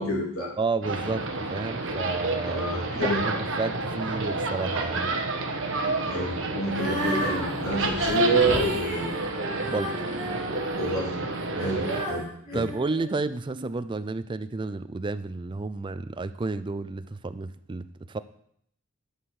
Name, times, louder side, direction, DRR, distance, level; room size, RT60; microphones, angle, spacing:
voice 1, 0.0-0.5 2.5-3.2 6.0-9.2 10.8-11.2 11.6-12.7, right 1 dB, 80° left, -2 dB, 2.8 m, -28 dB
voice 2, 0.6-2.6 2.9-5.2 9.6-9.9 11.5-11.7 12.5-18.2, right 3 dB, 20° right, 13 dB, 0.4 m, -31 dB
sound 1, 0.8-12.1, right 3 dB, 65° right, 1.3 m, -30 dB
Female singing, 6.6-13.7, equal, 5° right, 3.3 m, -34 dB
11.5 x 6.1 x 4.9 m, 0.69 s
head